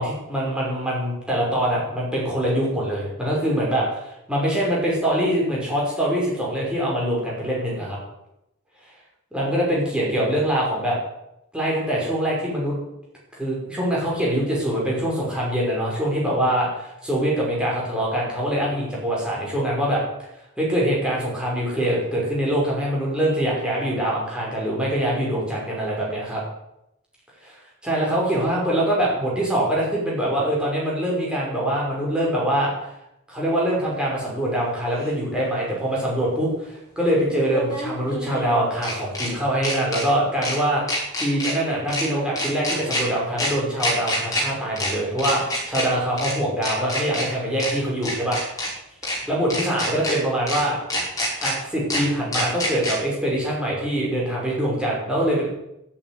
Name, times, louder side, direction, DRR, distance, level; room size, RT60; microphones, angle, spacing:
voice 1, 0.0-8.0 9.3-11.0 11.5-12.7 13.3-20.0 20.6-26.4 27.8-32.7 33.3-48.4 49.0-50.8 51.4-55.5, right 1 dB, 5° right, -5 dB, 5.7 m, -24 dB
sound 1, 35.0-35.1 37.5-39.3 39.6-40.0 40.4-40.6 40.9-41.5 41.9-42.0 42.4-43.0 43.4-43.5 43.8-44.4 44.8-44.9 45.2-45.8 46.2-46.3 46.6-47.2 47.6-47.7 48.0-48.7 49.0-49.2 49.5-50.1 50.5-50.6 50.9-51.5 51.9-52.0 52.3-52.9, left 1 dB, 15° left, 5.7 m, -26 dB
11.5 x 11.0 x 9.8 m, 0.84 s
head